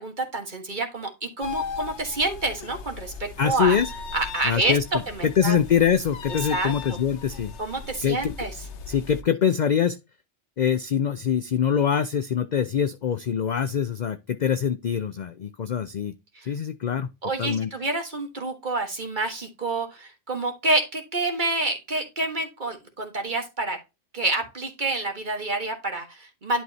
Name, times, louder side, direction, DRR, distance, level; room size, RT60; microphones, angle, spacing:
voice 1, 0.0-3.8 4.1-4.8 5.1-5.6 6.5-6.7 7.6-8.5 16.3-16.5 17.2-23.8 24.1-26.6, right 2 dB, 40° right, 4 dB, 1.6 m, -28 dB
sound 1, 1.4-9.2, left 6 dB, 70° left, 1.1 m, -38 dB
voice 2, 3.4-3.9 4.4-4.8 5.2-7.5 8.0-8.3 8.9-10.0 10.6-16.1 16.5-17.1 17.4-17.7, left 8 dB, 50° left, 11 dB, 0.5 m, -24 dB
11.0 x 4.8 x 2.8 m, 0.24 s
omnidirectional pair, 1.2 m